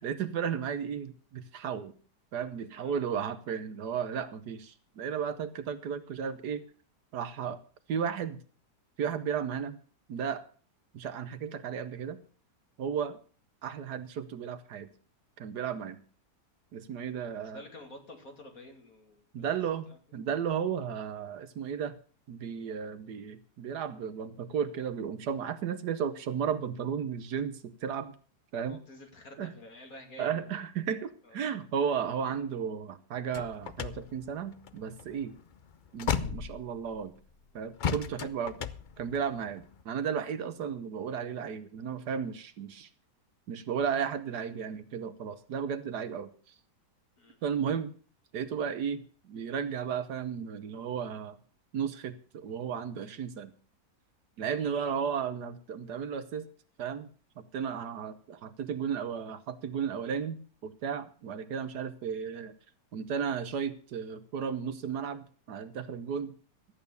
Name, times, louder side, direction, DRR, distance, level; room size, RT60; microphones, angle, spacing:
voice 1, 0.0-1.9 2.3-6.6 7.1-7.6 7.9-8.4 9.0-9.8 10.1-10.4 10.9-12.2 12.8-13.2 13.6-14.9 15.4-16.0 16.7-17.6 19.3-21.9 22.3-28.1 28.5-28.8 29.4-29.5 30.2-35.4 35.9-37.1 37.5-38.6 39.0-42.9 43.5-46.3 47.4-47.9 48.3-51.4 51.7-53.5 54.4-56.5 56.8-57.1 57.4-62.5 62.9-66.3, right 7 dB, 70° right, 11 dB, 1.5 m, -34 dB
voice 2, 17.2-19.5 19.9-20.0 28.6-30.5 31.2-31.4 38.1-38.3 47.2-47.4, left 1 dB, 55° left, 3 dB, 2.9 m, -50 dB
sound 1, 33.3-37.2 37.8-39.8, left 7 dB, 90° left, 0.4 m, -36 dB
13.0 x 8.8 x 6.9 m, 0.42 s
omnidirectional pair, 1.8 m